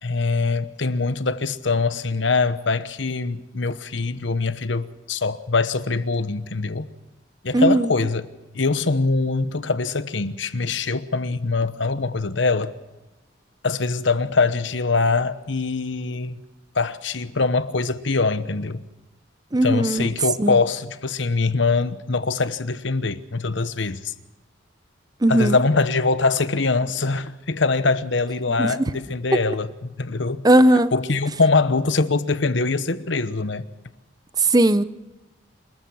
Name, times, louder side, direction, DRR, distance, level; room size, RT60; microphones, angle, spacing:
voice 1, 0.0-6.9 7.4-8.3 8.5-12.7 13.6-16.4 16.7-18.8 19.6-24.1 25.3-30.4 30.9-33.7, left 3 dB, 65° left, 1.0 m, -23 dB
voice 2, 7.5-7.9 19.5-20.1 20.4-20.6 25.2-25.6 28.6-28.7 30.4-30.9 34.4-34.8, right 1 dB, 20° right, 0.7 m, -17 dB
27.5 x 13.5 x 7.1 m
head